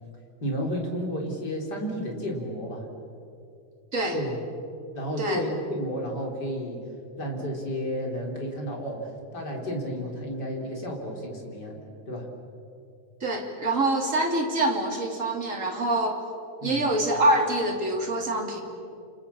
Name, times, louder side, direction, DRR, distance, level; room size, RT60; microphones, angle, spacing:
voice 1, 0.4-2.9 4.1-4.3 4.9-6.8 7.2-12.3 16.6-16.9, equal, 35° left, 1 dB, 4.4 m, -32 dB
voice 2, 13.2-16.2 16.6-18.6, right 1 dB, 25° right, 1 dB, 3.4 m, -25 dB
29.0 x 27.0 x 7.2 m, 2.6 s
omnidirectional pair, 3.5 m